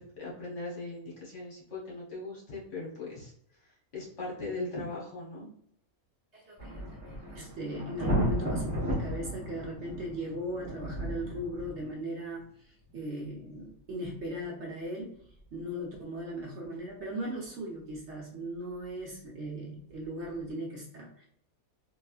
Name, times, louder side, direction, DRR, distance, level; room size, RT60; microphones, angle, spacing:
voice 1, 0.0-3.3 3.9-5.5, left 2 dB, 55° left, -4 dB, 1.5 m, -39 dB
voice 2, 6.3-15.1 15.5-21.3, right 1 dB, 55° right, -1 dB, 1.0 m, -38 dB
sound 1, 6.6-12.0 12.2-12.3 12.9-13.0 19.9-20.0, equal, 10° right, 1.3 m, -34 dB
3.3 x 2.8 x 2.4 m, 0.68 s
omnidirectional pair, 1.5 m